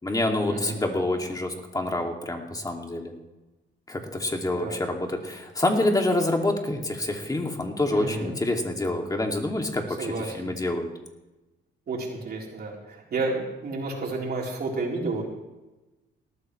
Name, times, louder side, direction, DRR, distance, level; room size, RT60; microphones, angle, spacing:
voice 1, 0.0-3.1 3.9-10.9, left 2 dB, 20° left, 2 dB, 2.4 m, -27 dB
voice 2, 7.9-8.3 10.0-10.5 11.9-15.3, right 3 dB, 50° right, -2 dB, 3.9 m, -31 dB
18.5 x 13.5 x 3.2 m, 1.1 s
cardioid pair, 90°, 20 cm